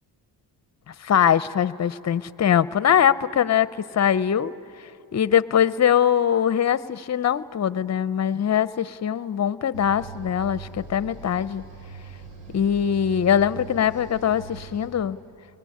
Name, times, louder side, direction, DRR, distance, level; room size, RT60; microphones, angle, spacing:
voice 1, 0.9-4.5 5.1-11.6 12.5-15.2, left 9 dB, 35° left, 16 dB, 0.7 m, -22 dB
sound 1, 9.7-14.9, right 5 dB, 70° right, 5.2 m, -41 dB
29.5 x 22.0 x 8.6 m, 2.7 s
cardioid pair, 80°, 45 cm